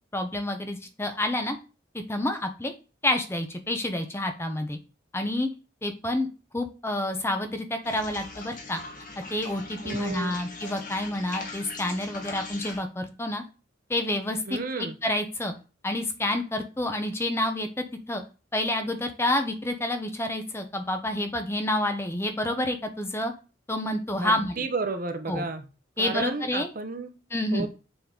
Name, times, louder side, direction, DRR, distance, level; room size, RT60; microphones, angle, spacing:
voice 1, 0.1-1.6 1.9-2.7 3.0-4.8 5.1-5.5 5.8-6.3 6.5-8.8 9.3-13.4 13.9-14.6 15.0-15.5 15.8-18.2 18.5-23.3 23.7-24.7 25.3-25.5 26.0-26.7 27.3-27.7, left 1 dB, 15° left, 6 dB, 0.6 m, -28 dB
sound 1, 7.8-12.8, left 3 dB, 45° left, 1.4 m, -40 dB
voice 2, 9.8-10.4 14.5-15.0 24.2-25.7 26.0-27.1 27.5-27.7, right 4 dB, 45° right, 8 dB, 0.7 m, -32 dB
6.9 x 3.9 x 3.7 m, 0.33 s
head